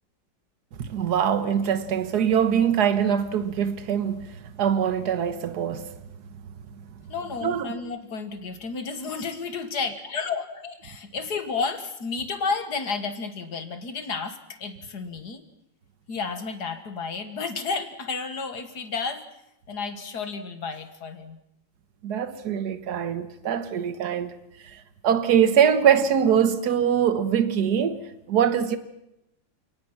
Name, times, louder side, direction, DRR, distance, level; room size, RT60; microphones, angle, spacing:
voice 1, 0.8-5.9 7.4-7.7 22.0-24.3 25.0-28.0 28.3-28.8, right 8 dB, 60° right, 1.7 m, -23 dB
voice 2, 7.1-15.4 16.1-19.2 19.7-21.4, left 4 dB, 60° left, 2.1 m, -32 dB
28.5 x 18.5 x 6.0 m
omnidirectional pair, 2.0 m